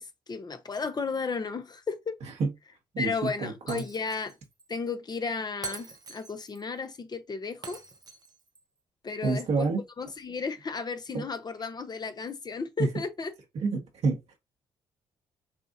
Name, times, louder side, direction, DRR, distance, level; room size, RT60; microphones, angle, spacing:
voice 1, 0.0-2.2 3.0-4.4 4.7-7.8 9.0-9.7 10.0-13.3, left 4 dB, 35° left, 0.9 m, -34 dB
voice 2, 2.9-3.8 9.2-9.8 11.1-11.2 12.8-12.9 13.5-14.2, right 4 dB, 65° right, 1.7 m, -28 dB
Shatter, 3.7-4.3 4.6-4.7 5.6-6.6 7.6-8.6, right 4 dB, 35° right, 0.9 m, -43 dB
6.9 x 2.5 x 2.6 m
hypercardioid pair, 55°, 11 cm